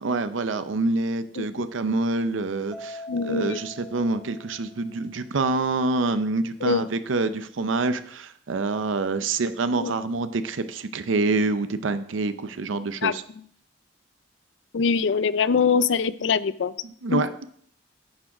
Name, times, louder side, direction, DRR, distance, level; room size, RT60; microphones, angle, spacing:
voice 1, 0.0-13.2 16.8-17.5, right 3 dB, 80° right, 11 dB, 0.6 m, -26 dB
Mallet percussion, 2.7-5.2, left 1 dB, ahead, 1.1 m, -42 dB
voice 2, 3.1-3.6 6.6-6.9 9.8-9.9 13.0-13.1 14.7-16.7 17.1-17.2, left 5 dB, 70° left, 17 dB, 0.4 m, -23 dB
10.5 x 6.3 x 4.9 m, 0.62 s
head